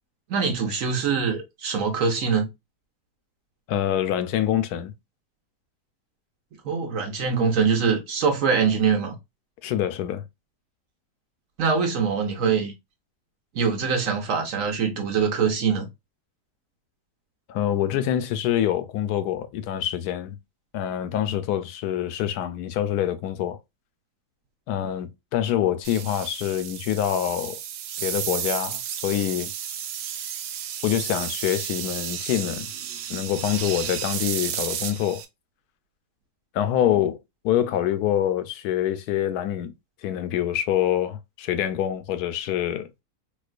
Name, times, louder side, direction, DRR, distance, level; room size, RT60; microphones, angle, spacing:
voice 1, 0.3-2.5 6.6-9.2 11.6-12.7 13.5-15.9, right 6 dB, 60° right, 1.1 m, -23 dB
voice 2, 3.7-4.9 9.6-10.2 17.5-20.4 20.7-23.6 24.7-27.6 28.0-29.5 30.8-32.7 33.1-35.2 36.5-37.2 37.4-39.7 40.0-42.9, left 11 dB, 75° left, 1.1 m, -25 dB
sound 1, 25.8-35.2, right 9 dB, 90° right, 1.2 m, -32 dB
4.3 x 2.4 x 2.3 m
omnidirectional pair, 1.7 m